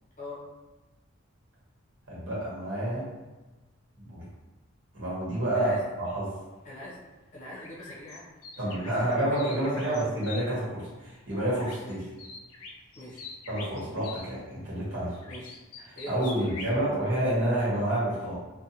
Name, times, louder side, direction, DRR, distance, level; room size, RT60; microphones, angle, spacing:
voice 1, 2.1-3.1 4.0-4.2 4.9-5.7 6.0-6.3 8.6-12.0 13.5-15.2 15.8-18.4, right 1 dB, 55° right, -8 dB, 1.2 m, -29 dB
voice 2, 6.6-7.0 7.3-8.3 8.5-10.0 11.8-12.1 12.9-13.3 15.3-15.6 15.9-16.7, left 1 dB, 35° left, -6 dB, 0.7 m, -43 dB
sound 1, 7.5-10.4 11.6-11.9 12.2-14.3 15.2-16.8, left 3 dB, 85° left, 0.4 m, -44 dB
2.6 x 2.2 x 2.7 m, 1.2 s
head